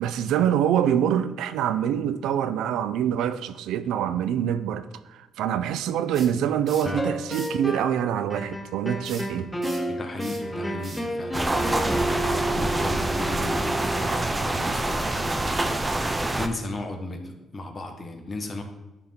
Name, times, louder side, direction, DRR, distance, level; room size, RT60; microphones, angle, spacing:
voice 1, 0.0-9.5, right 9 dB, 85° right, 0.4 m, -25 dB
sound 1, 6.1-6.9 7.3-7.6 9.0-12.1, right 3 dB, 40° right, 1.6 m, -43 dB
sound 2, 6.8-8.0 8.3-14.2, right 1 dB, 10° left, 0.8 m, -31 dB
voice 2, 9.9-15.6 16.2-18.6, left 2 dB, 35° left, 1.2 m, -35 dB
sound 3, 11.3-16.5, right 2 dB, 20° right, 0.6 m, -26 dB
10.5 x 3.6 x 4.4 m
cardioid pair, 90°, 0 cm